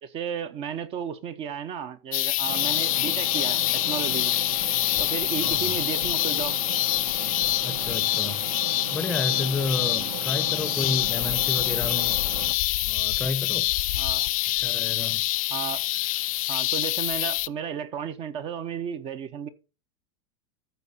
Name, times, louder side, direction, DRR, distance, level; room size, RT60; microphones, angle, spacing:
voice 1, 0.0-4.3 5.0-6.6 9.3-9.5 10.0-10.1 13.9-14.3 15.5-15.8 16.5-19.5, right 8 dB, 30° right, 0.8 m, -33 dB
sound 1, 2.1-17.5, left 17 dB, 75° left, 0.4 m, -26 dB
sound 2, 2.5-12.5, right 9 dB, 85° right, 1.0 m, -38 dB
voice 2, 5.4-5.8 7.6-8.4 8.9-12.2 12.8-13.7 14.5-15.2, left 3 dB, 10° left, 0.7 m, -31 dB
13.5 x 4.5 x 4.2 m
supercardioid pair, 145°, 18 cm